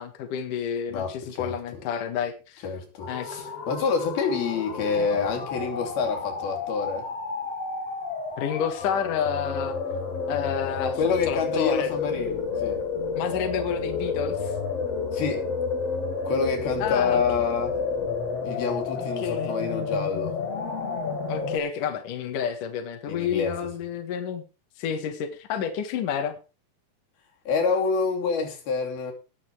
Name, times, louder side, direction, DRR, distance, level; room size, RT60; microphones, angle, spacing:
voice 1, 0.0-2.7 3.1-3.4 8.4-9.8 10.3-11.9 13.2-14.5 16.8-17.2 19.0-19.6 21.3-24.4 24.8-26.4, left 8 dB, 65° left, 3.1 m, -30 dB
voice 2, 0.9-1.5 2.6-7.1 11.0-12.8 15.1-15.5 16.2-17.8 18.4-20.4 23.1-23.6 27.5-29.1, left 5 dB, 90° left, 4.7 m, -27 dB
sound 1, 3.0-21.6, left 4 dB, 45° left, 3.2 m, -30 dB
19.5 x 6.9 x 4.7 m
omnidirectional pair, 4.2 m